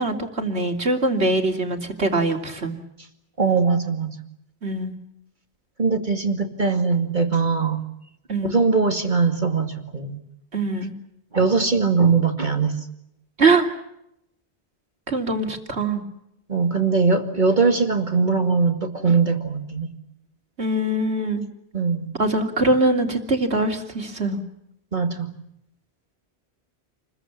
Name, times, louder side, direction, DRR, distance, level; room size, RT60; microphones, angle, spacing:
voice 1, 0.0-2.8 4.6-4.9 8.3-8.5 10.5-10.9 13.4-13.7 15.1-16.0 20.6-21.4 22.2-24.4, right 2 dB, 85° right, 4 dB, 3.4 m, -22 dB
voice 2, 3.4-4.2 5.8-7.8 8.4-10.2 11.3-12.7 16.5-19.9 21.7-22.1 24.9-25.3, right 4 dB, 45° right, 5 dB, 2.4 m, -21 dB
29.0 x 22.0 x 7.4 m, 0.78 s
omnidirectional pair, 1.1 m